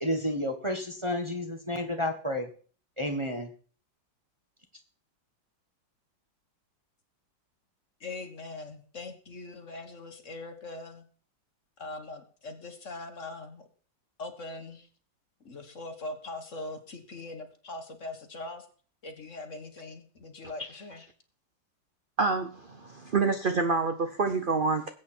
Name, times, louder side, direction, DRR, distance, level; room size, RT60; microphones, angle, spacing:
voice 1, 0.0-2.5 3.0-3.5, left 1 dB, 20° right, 3 dB, 1.2 m, -31 dB
voice 2, 8.0-11.1 11.8-13.7 14.2-14.9 15.5-18.7 19.0-21.0, left 2 dB, 45° left, 7 dB, 1.6 m, -41 dB
voice 3, 22.2-24.9, right 4 dB, 45° right, 8 dB, 0.7 m, -27 dB
20.0 x 8.3 x 4.4 m, 0.42 s
omnidirectional pair, 2.0 m